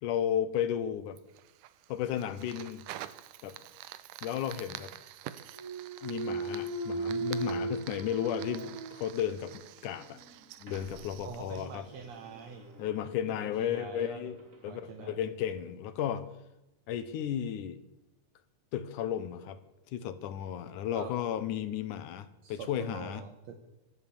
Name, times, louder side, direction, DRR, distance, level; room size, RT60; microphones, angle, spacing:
voice 1, 0.0-1.2 1.9-2.8 3.4-3.6 4.2-4.9 6.0-10.2 10.6-11.9 12.8-14.4 14.6-16.2 16.9-17.8 18.7-19.6 19.9-23.2, left 10 dB, 75° left, 12 dB, 2.5 m, -34 dB
Fire, 1.2-12.5, right 13 dB, 85° right, 2.3 m, -48 dB
Thump thud, 5.5-9.5 10.0-14.7, right 3 dB, 30° right, 2.0 m, -39 dB
voice 2, 11.2-12.7 13.3-14.2 14.7-15.2 20.9-21.1 22.4-23.6, right 6 dB, 65° right, 6 dB, 2.3 m, -44 dB
24.0 x 8.0 x 7.1 m, 0.96 s
omnidirectional pair, 3.7 m